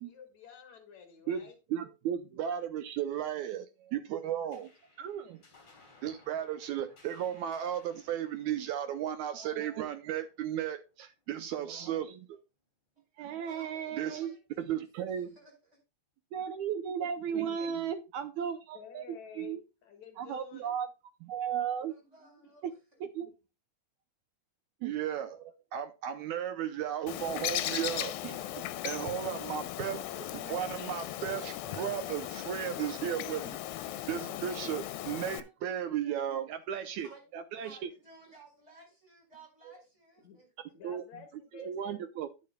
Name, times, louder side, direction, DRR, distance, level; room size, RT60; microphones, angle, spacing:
voice 1, 0.0-1.6 18.7-20.8 22.0-22.5 40.2-40.4 40.7-42.0, left 6 dB, 60° left, 2.6 m, -51 dB
voice 2, 1.7-4.7 5.0-5.4 6.0-12.4 13.2-15.3 16.3-19.0 19.4-19.6 20.2-20.9 21.2-21.9 23.0-23.3 24.8-28.5 28.8-33.6 34.1-37.9 39.7-39.8 40.8-41.0 41.5-42.3, right 9 dB, 80° right, 1.7 m, -35 dB
sound 1, 4.5-11.3, left 3 dB, 35° left, 4.5 m, -63 dB
voice 3, 13.4-14.6 15.1-15.8 21.9-23.0 36.3-36.4 36.8-37.2 37.6-40.5, right 2 dB, 20° right, 5.2 m, -57 dB
Bird, 27.1-35.4, left 13 dB, 80° left, 2.4 m, -37 dB
10.5 x 9.5 x 2.3 m
omnidirectional pair, 4.1 m